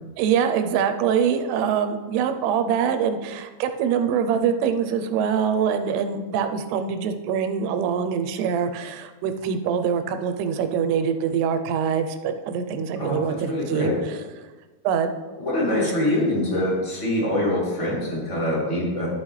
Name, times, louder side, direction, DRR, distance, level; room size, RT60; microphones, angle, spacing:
voice 1, 0.2-14.2 14.8-15.1, right 7 dB, 85° right, 8 dB, 2.7 m, -24 dB
voice 2, 12.9-13.9 15.4-19.1, left 1 dB, 10° left, -6 dB, 1.7 m, -24 dB
13.0 x 5.7 x 3.2 m, 1.2 s
omnidirectional pair, 4.7 m